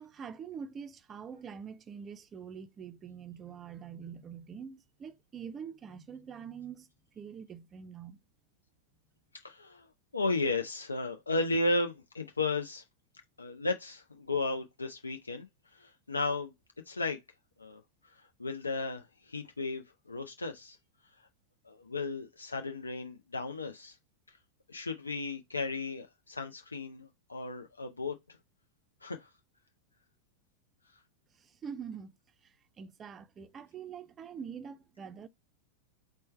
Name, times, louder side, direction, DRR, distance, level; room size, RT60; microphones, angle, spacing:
voice 1, 0.0-6.9 7.2-8.2 31.4-32.1 32.4-35.3, right 7 dB, 25° right, 0.5 m, -45 dB
voice 2, 9.3-9.9 10.1-12.8 13.4-16.5 16.9-17.2 17.6-20.8 21.2-21.3 21.6-24.0 24.3-24.4 24.7-28.4 29.0-29.3, left 3 dB, 80° left, 0.4 m, -35 dB
4.4 x 2.2 x 4.2 m
figure-of-eight pair, 90°, 0 cm